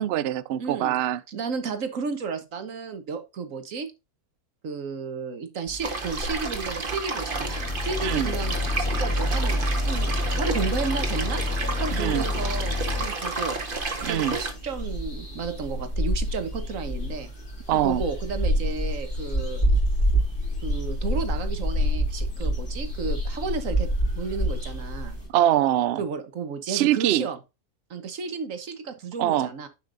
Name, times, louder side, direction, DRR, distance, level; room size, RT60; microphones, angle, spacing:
voice 1, 0.0-1.2 8.0-8.3 11.9-12.3 14.0-14.3 17.7-18.0 25.3-26.0 26.7-27.3 29.2-29.5, right 12 dB, 80° right, 0.5 m, -23 dB
voice 2, 0.6-1.0 1.3-3.9 4.6-11.4 11.8-13.6 14.1-17.3 17.8-19.6 20.6-23.9 24.1-25.2 26.0-27.4 27.9-29.7, right 5 dB, 60° right, 1.5 m, -33 dB
sound 1, 5.7-25.3, equal, 35° left, 3.2 m, -29 dB
sound 2, 5.8-14.5, right 3 dB, 35° right, 1.5 m, -32 dB
sound 3, 7.3-13.1, left 1 dB, 60° left, 2.8 m, -28 dB
9.9 x 5.8 x 2.6 m
omnidirectional pair, 1.6 m